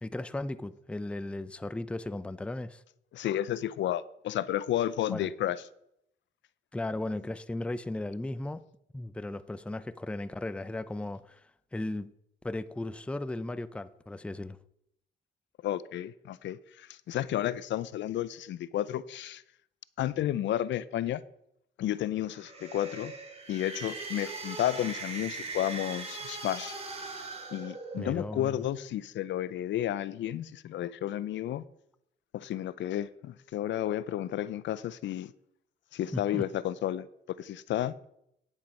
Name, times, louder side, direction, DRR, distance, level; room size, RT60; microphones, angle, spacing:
voice 1, 0.0-2.8 5.1-5.3 6.7-8.6 8.9-11.4 11.7-12.1 12.4-14.6 28.0-28.6 36.1-36.4, left 2 dB, 5° left, 0.4 m, -36 dB
voice 2, 3.1-5.6 15.6-19.4 20.0-21.2 21.8-23.1 23.5-26.8 27.5-31.6 32.3-35.3 35.9-37.9, left 12 dB, 65° left, 0.5 m, -32 dB
sound 1, 22.2-28.3, right 3 dB, 30° right, 2.6 m, -40 dB
9.7 x 7.3 x 5.3 m
cardioid pair, 90°, 20 cm